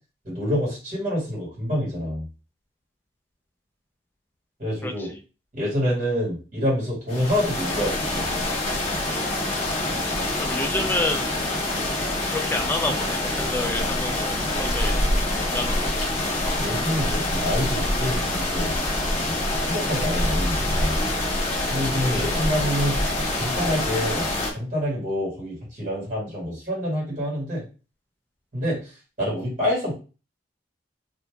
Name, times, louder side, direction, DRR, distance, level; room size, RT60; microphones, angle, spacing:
voice 1, 0.2-2.3 4.6-5.1 5.5-8.3 16.6-18.8 19.3-21.0 21.7-23.0 23.4-24.3 24.5-27.6 28.5-29.9, equal, 45° right, -5 dB, 2.0 m, -27 dB
voice 2, 4.8-5.2 10.4-11.3 12.3-15.0 15.4-16.0, left 2 dB, 10° left, 2 dB, 0.6 m, -29 dB
sound 1, 7.1-24.5, left 1 dB, 35° left, 1.2 m, -25 dB
2.9 x 2.6 x 3.5 m, 0.34 s
head